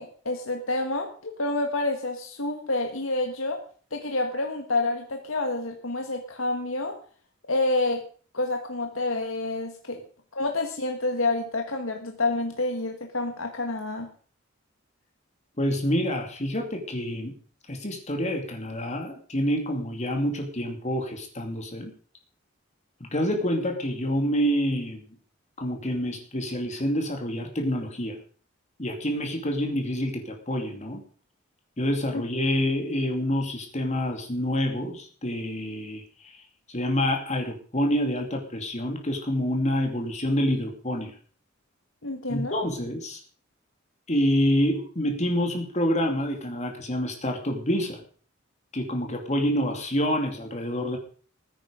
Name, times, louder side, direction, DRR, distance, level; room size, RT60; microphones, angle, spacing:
voice 1, 0.0-3.6 3.9-7.0 7.5-8.0 8.3-10.0 10.3-14.1 32.1-32.2 42.0-42.6, left 2 dB, 85° left, 3 dB, 1.9 m, -28 dB
voice 2, 15.6-17.3 17.7-21.9 23.0-25.0 25.6-28.2 28.8-31.0 31.8-36.4 36.7-41.1 42.3-43.2 44.1-48.0 48.7-51.0, equal, 35° left, 3 dB, 2.7 m, -27 dB
19.5 x 10.0 x 5.3 m, 0.43 s
head